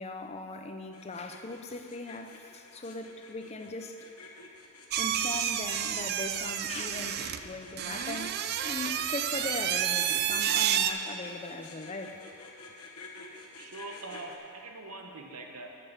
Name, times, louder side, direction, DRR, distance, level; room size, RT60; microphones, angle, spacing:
voice 1, 0.0-4.0 5.0-8.4 8.6-12.2, left 3 dB, 30° left, 6 dB, 0.5 m, -39 dB
sound 1, 0.9-14.4, left 4 dB, 75° left, 1.1 m, -49 dB
sound 2, 4.9-10.9, right 10 dB, 45° right, 0.4 m, -30 dB
voice 2, 13.6-15.8, right 2 dB, 80° right, 3 dB, 1.0 m, -43 dB
8.6 x 6.9 x 6.6 m, 2.7 s
head